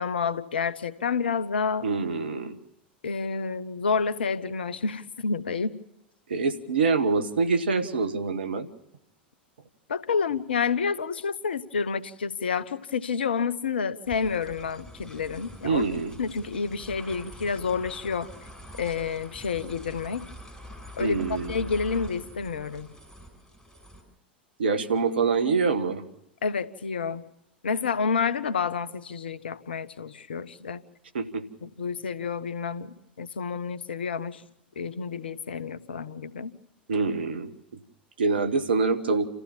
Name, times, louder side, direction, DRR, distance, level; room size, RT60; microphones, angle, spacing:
voice 1, 0.0-1.9 3.0-5.8 9.9-15.9 16.2-18.3 18.8-20.2 21.0-21.2 21.5-22.9 26.4-27.2 27.6-30.8 31.6-34.5 34.8-36.5, left 5 dB, 75° left, 15 dB, 0.9 m, -29 dB
voice 2, 1.8-2.6 6.3-8.7 15.6-16.1 21.0-21.5 24.6-26.0 31.1-31.4 36.9-37.8 38.2-39.3, right 4 dB, 75° right, 10 dB, 1.4 m, -25 dB
sound 1, 14.1-24.0, equal, 5° left, 6.7 m, -45 dB
28.0 x 14.5 x 7.4 m, 0.83 s
figure-of-eight pair, 90°, 6 cm